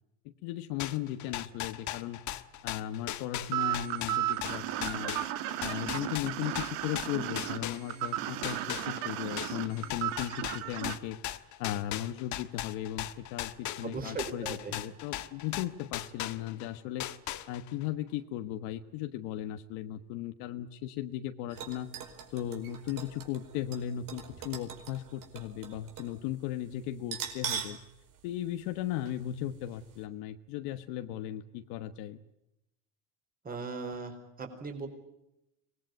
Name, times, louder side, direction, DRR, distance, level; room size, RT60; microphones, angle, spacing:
voice 1, 0.4-2.2 2.6-5.2 5.6-11.2 11.6-17.1 17.5-21.9 22.3-27.8 28.2-32.2, left 12 dB, 75° left, 8 dB, 1.4 m, -37 dB
sound 1, 0.8-8.1 8.4-16.7 17.0-17.8, left 13 dB, 50° left, 1.4 m, -38 dB
sound 2, 3.5-11.0, right 14 dB, 80° right, 2.1 m, -34 dB
voice 2, 13.8-14.8 33.4-34.9, right 4 dB, 25° right, 5 dB, 4.6 m, -38 dB
sound 3, 21.5-26.2 26.4-26.5 27.0-27.8 28.2-28.3 29.1-29.2 29.6-29.7, right 8 dB, 60° right, 5.0 m, -41 dB
24.0 x 19.5 x 9.3 m, 0.88 s
cardioid pair, 135°, 38 cm